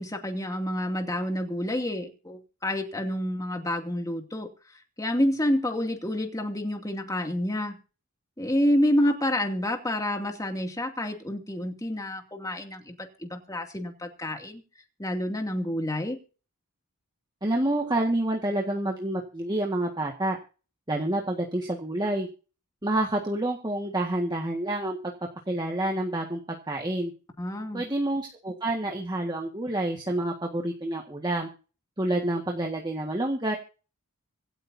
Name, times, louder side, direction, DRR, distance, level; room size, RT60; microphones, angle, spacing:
voice 1, 0.0-7.8 8.4-14.6 15.0-16.2 27.4-27.8, left 1 dB, 15° left, 3 dB, 2.5 m, -28 dB
voice 2, 17.4-20.4 20.9-22.3 22.8-25.1 25.5-27.1 27.7-31.5 32.0-33.6, right 1 dB, 20° right, 1 dB, 1.7 m, -28 dB
26.0 x 8.9 x 2.7 m, 0.36 s
head